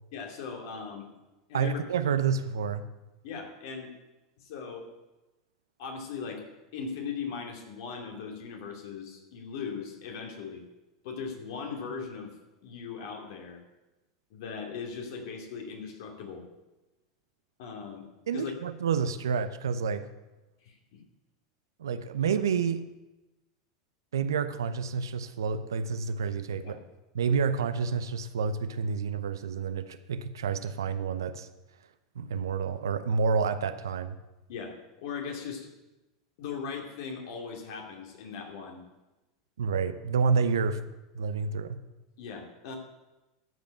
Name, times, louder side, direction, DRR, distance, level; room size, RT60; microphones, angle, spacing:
voice 1, 0.1-1.1 1.5-1.8 3.2-3.9 4.4-4.9 5.8-6.4 6.7-10.6 11.0-12.3 12.6-13.6 14.3-16.4 17.6-18.1 18.3-18.5 20.6-21.0 26.6-26.8 34.5-35.7 36.4-38.9 42.2-42.8, left 5 dB, 65° left, 2 dB, 2.7 m, -39 dB
voice 2, 1.5-2.9 18.3-20.1 21.8-22.9 24.1-26.8 27.1-31.5 32.2-34.2 39.6-40.8 41.1-41.8, right 6 dB, 80° right, 12 dB, 0.7 m, -29 dB
13.5 x 5.3 x 7.9 m, 1.1 s
hypercardioid pair, 90°, 2 cm